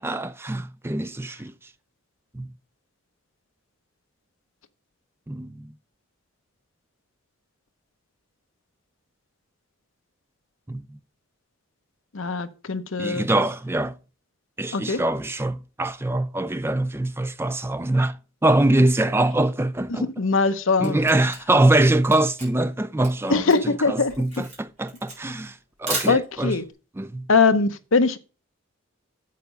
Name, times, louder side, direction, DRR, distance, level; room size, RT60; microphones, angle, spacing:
voice 1, 0.0-1.5 2.3-2.5 5.3-5.7 10.7-11.0 13.0-14.0 14.6-20.1 20.8-23.4 23.9-26.5 27.0-27.3, right 2 dB, 10° right, 0.3 m, -23 dB
voice 2, 12.1-13.3 14.7-15.0 19.9-21.0 23.3-24.1 26.1-26.7 27.3-28.2, left 4 dB, 65° left, 0.8 m, -21 dB
Camera, 20.4-26.6, right 2 dB, 30° right, 4.5 m, -36 dB
7.9 x 6.8 x 5.1 m
head